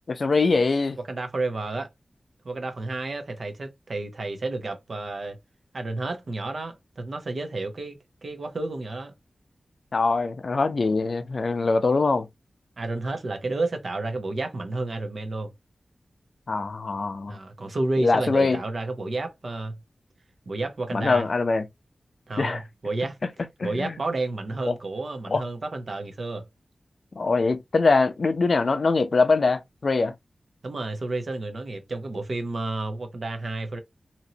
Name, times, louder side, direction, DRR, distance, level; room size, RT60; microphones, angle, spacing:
voice 1, 0.1-1.0 9.9-12.3 16.5-17.4 18.0-18.6 20.9-21.7 22.4-22.6 23.6-23.9 24.6-24.7 25.3-25.4 27.2-30.1, left 3 dB, 60° left, 0.4 m, -23 dB
voice 2, 1.1-1.9 2.4-5.4 5.7-8.0 8.2-9.1 12.8-15.5 17.3-19.8 20.5-21.2 22.3-23.2 23.6-26.5 30.6-33.8, right 2 dB, 65° right, 0.8 m, -31 dB
2.9 x 2.7 x 2.8 m
wide cardioid pair, 80°, 0 cm